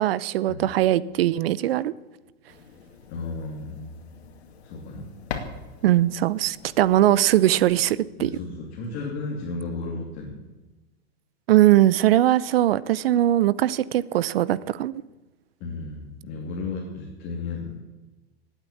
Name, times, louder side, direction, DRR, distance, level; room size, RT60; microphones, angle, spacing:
voice 1, 0.0-1.9 5.8-8.3 11.5-14.9, right 13 dB, 65° right, 19 dB, 0.7 m, -20 dB
sound 1, 2.5-7.9, left 6 dB, 75° left, 2.5 m, -42 dB
voice 2, 3.1-4.0 4.6-5.1 8.2-10.3 15.6-17.8, left 3 dB, 30° left, -2 dB, 2.9 m, -34 dB
17.5 x 9.1 x 8.5 m, 1.1 s
supercardioid pair, 175°, 32 cm